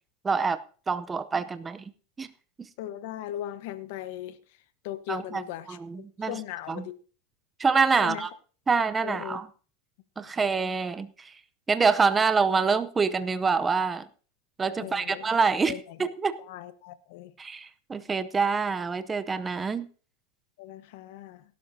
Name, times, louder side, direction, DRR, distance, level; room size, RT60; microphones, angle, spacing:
voice 1, 0.2-0.6 0.9-1.8 2.2-2.3 5.1-5.4 5.7-6.4 6.7-6.9 7.6-8.3 8.7-9.5 10.2-11.3 11.7-14.1 14.6-15.7 16.0-16.4 17.4-19.9, right 5 dB, 15° right, 0.6 m, -26 dB
voice 2, 2.8-4.4 4.8-5.8 6.3-6.9 8.0-8.3 9.0-9.4 14.8-15.3 15.6-16.0 16.5-17.3 20.6-21.4, left 13 dB, 65° left, 1.1 m, -38 dB
18.0 x 12.0 x 2.8 m
supercardioid pair, 135°, 0 cm